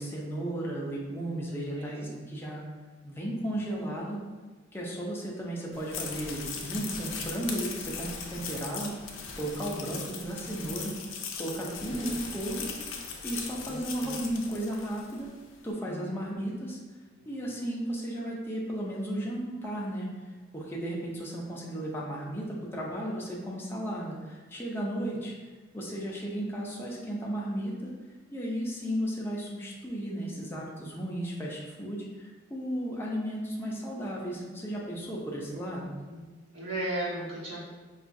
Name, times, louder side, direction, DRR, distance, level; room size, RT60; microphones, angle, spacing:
voice 1, 0.0-2.6 3.0-4.2 4.7-11.0 11.4-12.7 13.2-15.3 15.6-16.8 17.3-20.1 20.5-25.3 25.7-27.9 28.3-35.9, right 1 dB, 10° left, -4 dB, 0.5 m, -34 dB
voice 2, 1.5-2.1 9.8-10.0 11.7-12.2 13.7-14.2 15.9-16.4 17.2-17.4 35.6-36.2 36.5-37.6, right 1 dB, 80° right, -8 dB, 1.3 m, -38 dB
sound 1, 5.7-15.3, left 5 dB, 90° left, 0.5 m, -39 dB
4.5 x 2.4 x 2.5 m, 1.3 s
head